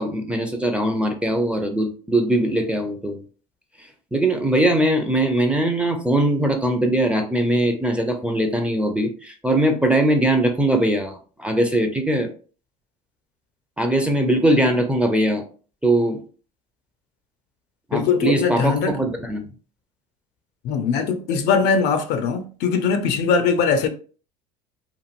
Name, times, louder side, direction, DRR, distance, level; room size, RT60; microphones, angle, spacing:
voice 1, 0.0-3.2 4.1-12.3 13.8-15.4 15.8-16.2 17.9-19.5, right 1 dB, 5° right, 0.5 m, -21 dB
voice 2, 17.9-19.0 20.6-23.9, left 5 dB, 55° left, 0.5 m, -21 dB
2.9 x 2.4 x 2.5 m
hypercardioid pair, 80°, 20 cm